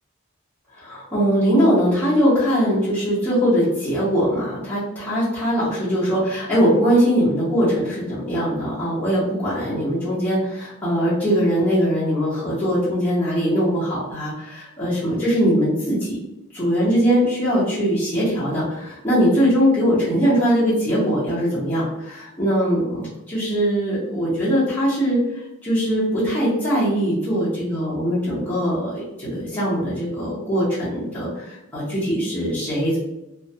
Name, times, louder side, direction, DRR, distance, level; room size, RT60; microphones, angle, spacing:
voice 1, 0.7-16.2 16.5-33.0, equal, 10° left, -11 dB, 0.8 m, -21 dB
2.5 x 2.2 x 2.7 m, 0.93 s
head